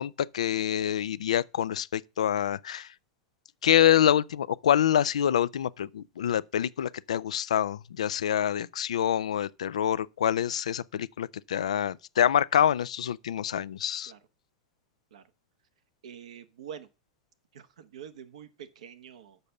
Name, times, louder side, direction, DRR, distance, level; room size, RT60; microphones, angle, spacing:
voice 1, 0.0-2.9 3.6-14.1, left 10 dB, 80° left, 0.3 m, -26 dB
voice 2, 16.0-16.9 17.5-19.4, right 8 dB, 75° right, 1.1 m, -45 dB
6.7 x 5.3 x 6.9 m
hypercardioid pair, 100°, 3 cm